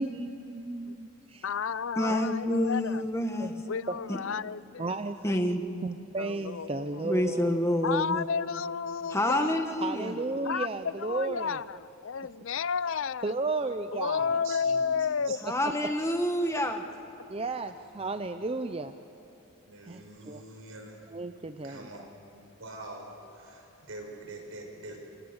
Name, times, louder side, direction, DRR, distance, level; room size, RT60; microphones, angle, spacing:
voice 1, 0.0-1.4 2.1-2.2 3.4-3.6 3.9-4.0 4.8-5.2 5.5-5.6 5.8-8.0 9.8-11.6 13.2-14.4 15.4-15.5 17.3-18.9 19.9-20.4 21.1-21.9, right 3 dB, 25° right, 9 dB, 0.6 m, -34 dB
voice 2, 1.4-3.1 3.7-4.9 5.3-5.8 6.2-7.1 7.8-9.6 10.4-13.3 13.9-15.4 15.6-15.8, left 6 dB, 65° left, 18 dB, 0.5 m, -32 dB
voice 3, 2.0-3.6 5.2-5.6 7.0-8.2 9.1-10.1 15.4-16.8, left 1 dB, 15° left, 5 dB, 1.4 m, -28 dB
voice 4, 14.2-14.9 15.2-15.4 16.2-16.3 17.8-18.2 19.7-21.0 21.6-22.0 22.6-25.0, right 2 dB, 80° right, 2 dB, 5.5 m, -45 dB
28.0 x 24.0 x 8.1 m, 2.8 s
head